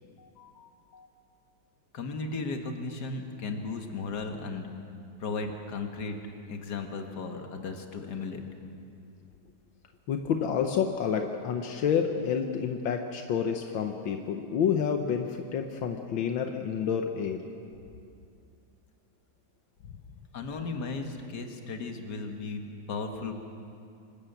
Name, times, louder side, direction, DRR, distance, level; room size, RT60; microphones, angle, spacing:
voice 1, 0.0-1.1 1.9-4.7 5.2-6.2 6.5-8.4 20.3-22.6 22.9-23.3, left 4 dB, 60° left, 4 dB, 2.1 m, -36 dB
voice 2, 10.1-17.4, left 7 dB, 80° left, 5 dB, 1.7 m, -29 dB
25.5 x 13.5 x 8.0 m, 2.5 s
omnidirectional pair, 2.1 m